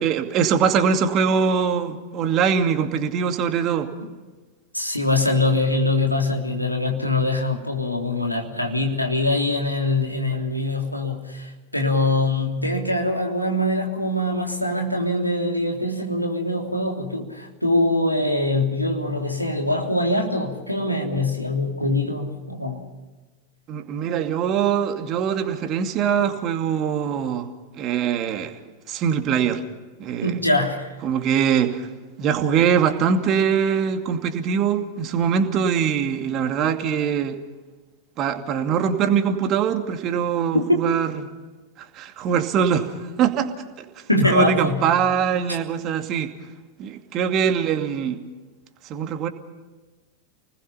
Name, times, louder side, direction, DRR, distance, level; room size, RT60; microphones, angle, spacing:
voice 1, 0.0-3.9 23.7-27.5 27.8-28.6 28.9-29.6 30.0-30.4 31.0-31.9 32.2-37.4 38.2-41.1 41.8-43.5 43.8-46.3 46.8-48.2 48.8-49.3, right 7 dB, 35° right, 6 dB, 2.4 m, -22 dB
voice 2, 4.7-22.9 30.2-30.9 44.1-44.8, left 2 dB, 90° left, 2 dB, 3.3 m, -23 dB
29.5 x 20.0 x 5.7 m, 1.2 s
figure-of-eight pair, 90°, 0 cm